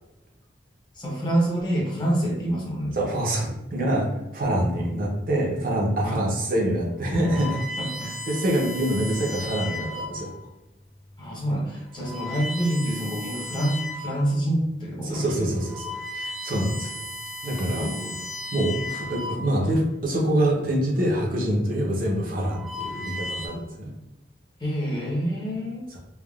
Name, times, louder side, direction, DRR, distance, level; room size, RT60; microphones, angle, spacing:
voice 1, 0.9-3.0 4.7-5.0 6.0-6.2 7.8-8.2 11.2-15.6 17.8-18.2 24.6-25.8, right 1 dB, 25° left, -4 dB, 0.7 m, -27 dB
voice 2, 3.0-7.6 8.3-10.3 15.0-16.9 17.4-17.9 18.5-23.9, right 1 dB, 50° right, -2 dB, 0.6 m, -25 dB
sound 1, 7.0-10.4 11.1-11.3 11.8-14.3 14.8-14.9 15.4-19.8 20.9-21.2 22.1-23.5, left 1 dB, ahead, 0.3 m, -36 dB
3.4 x 2.2 x 2.3 m, 0.96 s
head